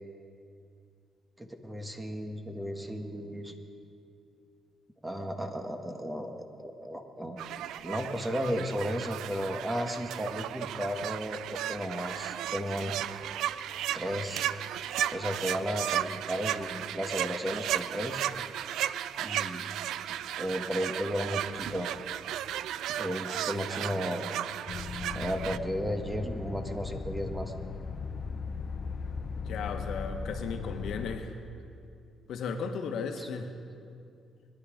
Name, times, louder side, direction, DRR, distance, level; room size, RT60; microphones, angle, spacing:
voice 1, 1.4-3.5 5.0-7.4 7.8-12.9 13.9-14.5 15.1-18.2 19.2-19.7 20.4-21.9 23.0-24.2 25.1-27.5 33.2-33.4, equal, 15° right, 5 dB, 1.5 m, -34 dB
sound 1, 7.4-25.6, right 11 dB, 90° right, 0.3 m, -35 dB
sound 2, 24.7-31.2, left 4 dB, 55° left, 0.9 m, -37 dB
voice 2, 29.4-31.3 32.3-33.6, left 5 dB, 75° left, 5 dB, 1.3 m, -35 dB
21.5 x 11.5 x 5.1 m, 2.4 s
cardioid pair, 90°, 0 cm